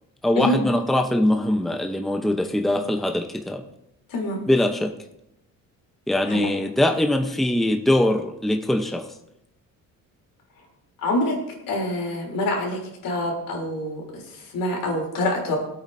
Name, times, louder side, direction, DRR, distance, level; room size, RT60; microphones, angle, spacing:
voice 1, 0.2-3.6 4.5-4.9 6.1-9.1, left 1 dB, ahead, 5 dB, 0.8 m, -22 dB
voice 2, 4.1-4.4 6.2-6.5 11.0-11.3 11.7-15.6, left 1 dB, 75° left, -1 dB, 3.5 m, -26 dB
21.5 x 8.5 x 2.7 m, 0.82 s
cardioid pair, 115°, 33 cm